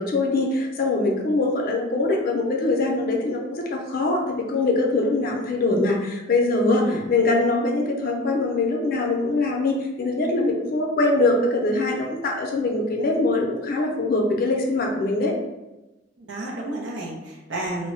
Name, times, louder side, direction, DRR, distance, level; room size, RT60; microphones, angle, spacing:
voice 1, 0.0-15.3, left 2 dB, 55° left, 1 dB, 0.5 m, -23 dB
voice 2, 16.2-17.9, right 2 dB, 85° right, -2 dB, 0.5 m, -31 dB
2.1 x 2.0 x 3.7 m, 1.0 s
head